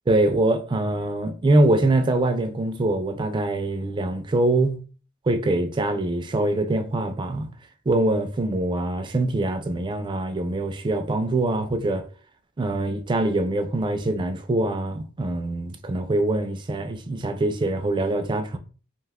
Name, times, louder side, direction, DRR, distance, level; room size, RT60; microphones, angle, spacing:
voice 1, 0.1-4.8 5.3-7.5 7.9-12.1 12.6-18.6, right 2 dB, 25° right, 0.3 m, -23 dB
2.4 x 2.2 x 3.4 m
head